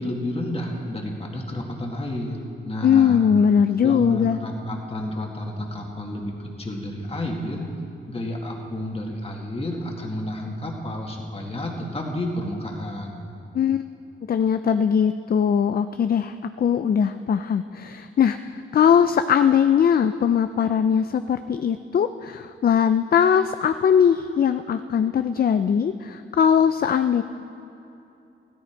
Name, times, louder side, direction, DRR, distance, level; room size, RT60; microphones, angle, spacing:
voice 1, 0.0-3.3 3.8-7.7 8.1-13.2, left 1 dB, 30° left, 0 dB, 1.9 m, -30 dB
voice 2, 2.8-4.4 13.5-13.8 14.3-27.2, left 8 dB, 45° left, 10 dB, 0.4 m, -20 dB
16.5 x 14.0 x 4.5 m, 2.9 s
wide cardioid pair, 145°, 21 cm